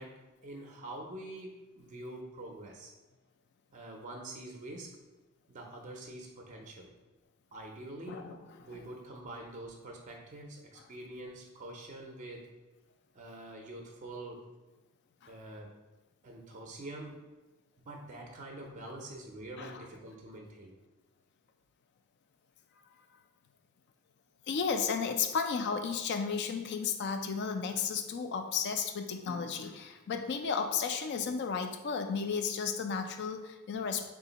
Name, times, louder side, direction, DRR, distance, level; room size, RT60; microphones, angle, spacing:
voice 1, 0.0-2.9 3.7-5.0 5.5-6.9 7.5-8.3 8.6-12.5 13.1-14.4 15.3-15.8 16.2-17.2 17.8-20.8, right 1 dB, 35° right, 1 dB, 0.5 m, -45 dB
voice 2, 8.1-8.8 15.2-15.3 19.6-19.8 24.5-34.1, left 6 dB, 50° left, 7 dB, 0.4 m, -33 dB
3.7 x 2.4 x 3.9 m, 1.1 s
head